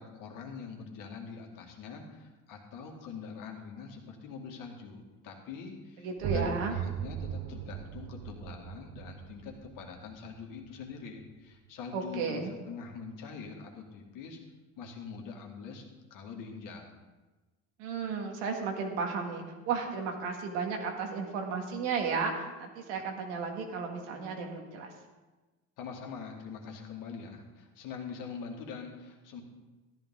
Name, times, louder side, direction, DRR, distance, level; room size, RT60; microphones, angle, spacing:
voice 1, 0.0-14.4 14.8-15.8 16.1-16.9 25.8-29.4, left 5 dB, 65° left, 1 dB, 2.2 m, -44 dB
voice 2, 6.0-6.7 11.9-12.5 17.8-24.9, right 5 dB, 90° right, 2 dB, 2.0 m, -34 dB
sound 1, 6.2-11.7, right 9 dB, 40° right, 0.7 m, -39 dB
13.5 x 11.0 x 3.8 m, 1.2 s
cardioid pair, 115°, 35 cm